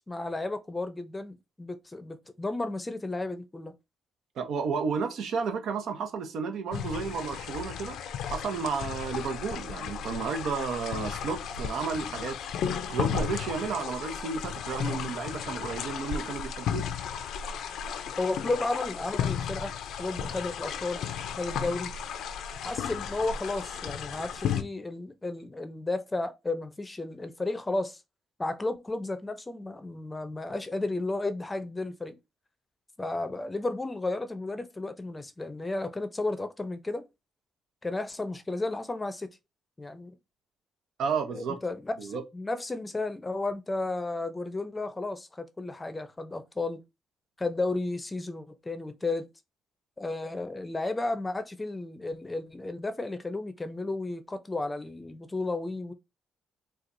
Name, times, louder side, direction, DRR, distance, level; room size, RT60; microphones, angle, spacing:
voice 1, 0.1-3.7 18.2-19.7 20.0-21.0 21.4-21.9 22.6-28.0 28.4-32.2 33.0-37.1 37.8-39.3 39.8-40.2 41.3-46.8 47.4-49.3 50.0-55.9, left 2 dB, 20° left, 0.6 m, -33 dB
voice 2, 4.4-8.0 8.3-12.4 12.9-16.9 41.0-41.6 42.0-42.2, right 5 dB, 70° right, 0.8 m, -32 dB
sound 1, 6.7-24.6, left 8 dB, 80° left, 0.5 m, -34 dB
4.4 x 2.4 x 2.6 m
cardioid pair, 90°, 0 cm